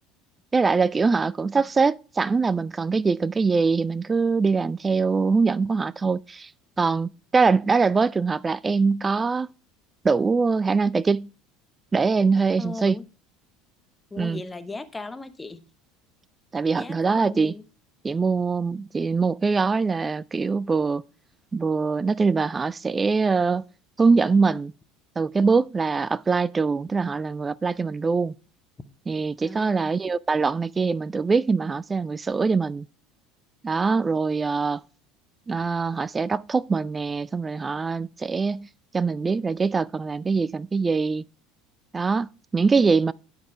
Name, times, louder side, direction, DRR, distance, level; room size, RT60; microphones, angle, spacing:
voice 1, 0.5-6.5 6.8-9.5 10.0-11.3 11.9-13.0 14.2-14.4 16.5-17.5 18.0-21.0 21.5-23.6 24.0-24.7 25.2-28.3 29.1-32.9 33.6-34.8 35.5-38.7 38.9-41.2 41.9-43.1, right 4 dB, 20° right, 0.3 m, -23 dB
voice 2, 12.6-13.0 14.1-15.6 16.8-17.6 29.4-30.0, left 3 dB, 15° left, 0.9 m, -37 dB
9.9 x 5.0 x 4.6 m
figure-of-eight pair, 70°, 0 cm